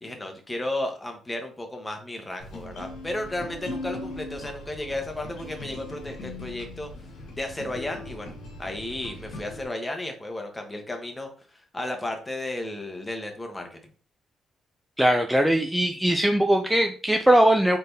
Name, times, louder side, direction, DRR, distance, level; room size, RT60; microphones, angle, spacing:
voice 1, 0.0-6.9 7.3-8.3 8.6-13.8, left 1 dB, 15° left, 4 dB, 1.0 m, -33 dB
sound 1, 2.4-9.6, left 2 dB, 85° left, 1.1 m, -39 dB
voice 2, 15.0-17.8, right 1 dB, 5° right, 5 dB, 0.4 m, -20 dB
4.1 x 3.4 x 2.7 m, 0.40 s
cardioid pair, 90°, 0 cm